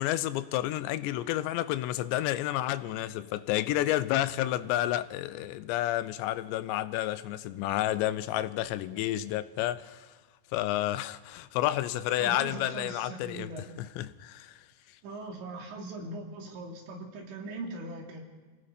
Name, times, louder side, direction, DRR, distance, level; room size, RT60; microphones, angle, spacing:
voice 1, 0.0-10.1 10.5-13.5 13.8-14.6, left 14 dB, 85° left, 3.0 m, -30 dB
voice 2, 12.2-13.7 15.0-18.2, right 2 dB, 80° right, 5.0 m, -40 dB
28.0 x 18.0 x 5.2 m
omnidirectional pair, 5.1 m